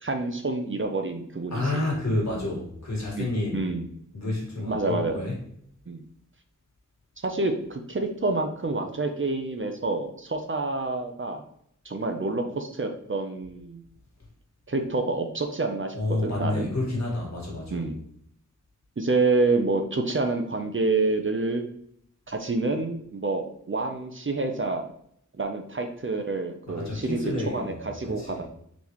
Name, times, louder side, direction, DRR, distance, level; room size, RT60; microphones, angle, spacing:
voice 1, 0.0-1.8 3.1-3.3 3.5-3.9 4.6-5.2 5.9-6.0 7.2-11.4 11.8-13.8 14.7-16.7 17.7-18.0 19.0-21.7 22.3-24.8 25.4-28.4, right 3 dB, 40° right, 5 dB, 0.6 m, -28 dB
voice 2, 1.5-3.6 4.1-5.4 15.9-17.9 26.7-27.7 28.1-28.4, left 2 dB, 60° left, -2 dB, 1.7 m, -29 dB
4.1 x 3.5 x 3.0 m, 0.69 s
wide cardioid pair, 45°, 31 cm